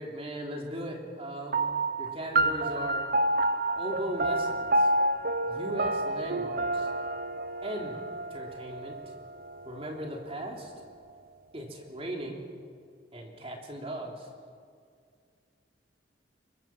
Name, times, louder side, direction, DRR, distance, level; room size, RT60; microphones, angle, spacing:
voice 1, 0.0-1.6 2.0-3.0 3.8-4.9 5.4-6.9 7.6-8.0 8.3-9.0 9.7-10.7 11.5-12.4 13.1-14.3, right 1 dB, 35° right, 1 dB, 3.4 m, -38 dB
sound 1, 1.5-10.3, right 2 dB, 55° right, 0.7 m, -29 dB
24.0 x 22.0 x 6.1 m, 2.2 s
head